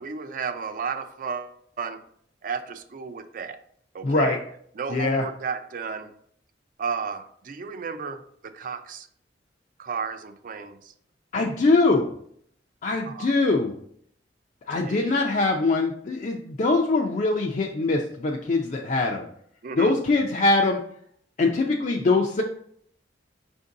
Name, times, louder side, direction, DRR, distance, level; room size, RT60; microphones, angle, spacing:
voice 1, 0.0-2.0 2.4-3.6 3.9-4.4 4.7-6.1 6.8-9.1 9.8-10.9 13.0-13.3 14.8-15.2 19.6-19.9, right 5 dB, 50° right, 9 dB, 0.4 m, -33 dB
voice 2, 4.0-4.4 4.9-5.2 11.3-12.0 12.8-13.7 14.7-19.2 19.8-20.8 21.4-22.4, left 3 dB, 45° left, 0 dB, 0.4 m, -22 dB
5.1 x 2.6 x 3.6 m, 0.66 s
head